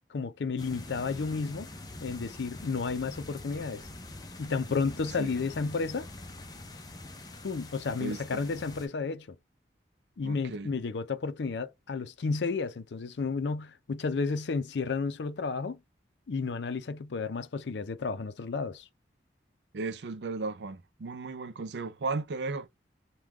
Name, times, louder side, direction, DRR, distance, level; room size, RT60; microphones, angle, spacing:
voice 1, 0.1-1.7 2.0-3.8 4.4-6.1 7.4-9.4 10.2-15.8 16.3-18.9, left 4 dB, 80° left, 0.5 m, -32 dB
sound 1, 0.6-8.9, left 2 dB, 20° left, 0.5 m, -45 dB
voice 2, 8.0-8.4 10.2-10.7 19.7-22.7, right 3 dB, 75° right, 0.5 m, -35 dB
3.6 x 2.2 x 2.9 m
head